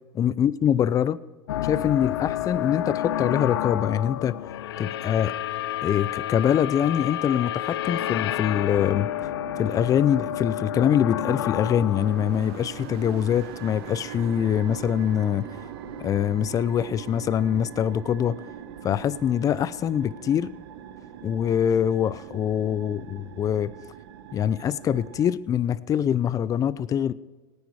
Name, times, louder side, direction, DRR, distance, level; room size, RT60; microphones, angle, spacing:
voice 1, 0.1-1.2 1.6-4.4 4.8-5.3 5.8-9.1 9.6-15.5 16.0-18.4 18.8-20.5 21.2-23.7 24.3-27.1, left 9 dB, 25° left, 18 dB, 0.5 m, -24 dB
sound 1, 1.5-13.6, left 13 dB, 90° left, 0.5 m, -30 dB
sound 2, 8.7-25.3, right 8 dB, 75° right, 1.1 m, -41 dB
18.0 x 9.7 x 4.7 m, 1.3 s
supercardioid pair, 120°, 13 cm